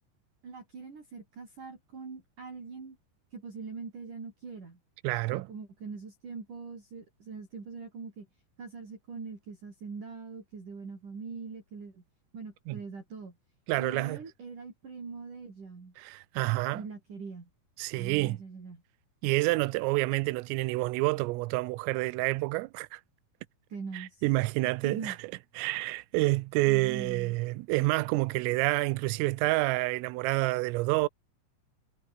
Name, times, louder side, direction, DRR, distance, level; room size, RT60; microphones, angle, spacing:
voice 1, 0.4-3.0 3.3-4.8 5.3-8.3 8.6-12.0 12.3-13.4 13.8-15.9 16.7-17.5 18.0-18.8 23.7-24.2 24.6-25.2 26.7-27.4, right 4 dB, 40° right, 6.7 m, -42 dB
voice 2, 5.0-5.5 12.7-12.8 13.7-14.2 16.0-16.8 17.8-18.4 19.2-23.0 23.9-25.2 25.6-31.1, right 22 dB, 85° right, 3.4 m, -28 dB
omnidirectional pair, 5.9 m